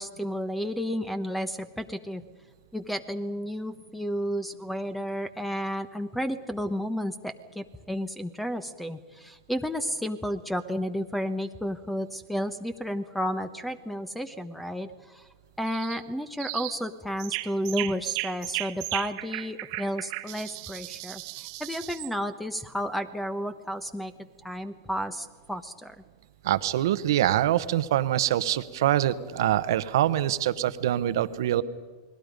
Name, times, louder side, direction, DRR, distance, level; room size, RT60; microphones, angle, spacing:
voice 1, 0.0-2.2 2.7-15.3 15.6-24.1 24.4-25.9, equal, 5° left, 11 dB, 1.0 m, -32 dB
sound 1, 15.7-16.0 16.4-16.8 17.2-22.1, right 20 dB, 55° right, 1.3 m, -35 dB
voice 2, 26.4-31.6, right 12 dB, 70° right, 14 dB, 1.1 m, -24 dB
30.0 x 20.5 x 5.3 m, 1.4 s
hypercardioid pair, 115°, 2 cm